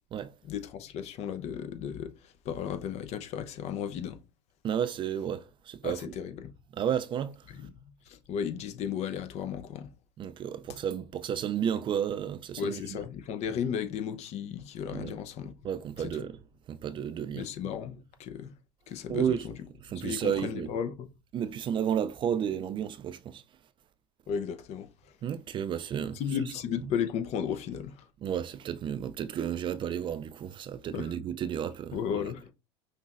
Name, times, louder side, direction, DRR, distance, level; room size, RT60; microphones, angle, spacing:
voice 1, 0.4-4.2 5.8-6.5 7.5-9.9 12.6-15.5 16.0-16.1 17.3-18.5 18.9-19.5 20.0-21.1 24.3-25.1 26.1-28.1 30.9-31.1 31.9-32.5, left 8 dB, 50° left, 0.8 m, -35 dB
voice 2, 4.6-6.0 6.8-7.4 10.2-13.0 14.9-15.1 15.6-16.4 16.7-17.5 19.1-19.5 19.8-20.7 21.3-23.4 25.2-26.2 28.2-32.0, right 9 dB, 35° right, 0.4 m, -32 dB
5.4 x 2.9 x 2.5 m
hypercardioid pair, 85°, 14 cm